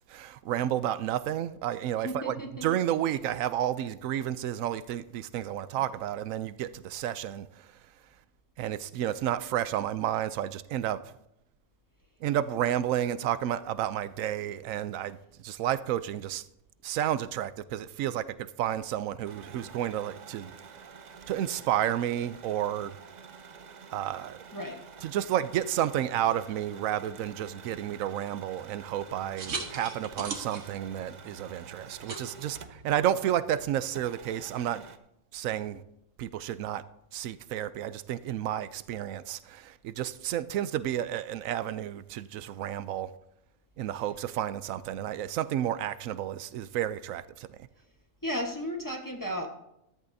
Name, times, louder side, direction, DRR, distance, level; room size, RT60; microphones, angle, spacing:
voice 1, 0.1-2.3 2.6-7.7 8.6-11.1 12.2-16.4 16.8-18.3 18.6-20.5 21.3-23.0 23.9-24.4 25.0-34.9 35.3-35.8 36.2-36.8 37.1-43.1 43.8-47.6, right 11 dB, 90° right, 1.0 m, -31 dB
voice 2, 2.0-2.6 24.5-24.8 32.4-32.5 48.2-49.5, equal, 15° left, 1.2 m, -34 dB
sound 1, 19.3-33.0 33.3-33.4 33.9-35.0, right 6 dB, 45° right, 0.6 m, -49 dB
sound 2, 29.0-33.7, right 4 dB, 70° right, 1.7 m, -41 dB
14.0 x 13.5 x 2.7 m
omnidirectional pair, 1.3 m